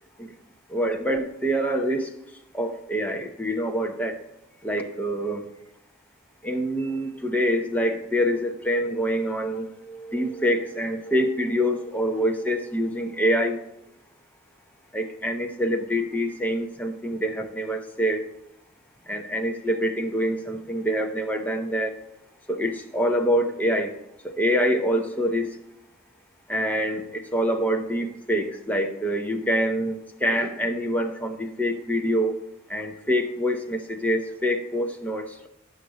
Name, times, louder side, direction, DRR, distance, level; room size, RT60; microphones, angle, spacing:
voice 1, 0.7-2.1 2.5-4.2 4.6-5.5 6.4-13.6 14.9-18.3 19.1-22.0 22.5-23.9 24.2-25.5 26.5-32.4 32.7-35.5, equal, 10° left, 3 dB, 0.7 m, -26 dB
9.7 x 6.4 x 4.0 m, 0.85 s
head